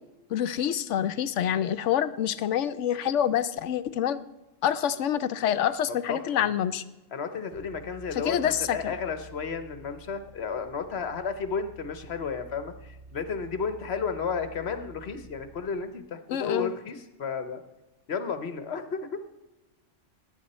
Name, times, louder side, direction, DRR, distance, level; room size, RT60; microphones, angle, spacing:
voice 1, 0.3-4.2 4.6-6.8 8.3-8.8 16.3-16.7, left 10 dB, 80° left, 12 dB, 1.0 m, -26 dB
voice 2, 6.1-6.5 7.1-17.6 18.1-19.2, left 5 dB, 60° left, 9 dB, 1.2 m, -33 dB
sound 1, 7.5-15.7, right 3 dB, 50° right, 2.3 m, -50 dB
18.5 x 9.3 x 4.3 m, 1.0 s
omnidirectional pair, 1.2 m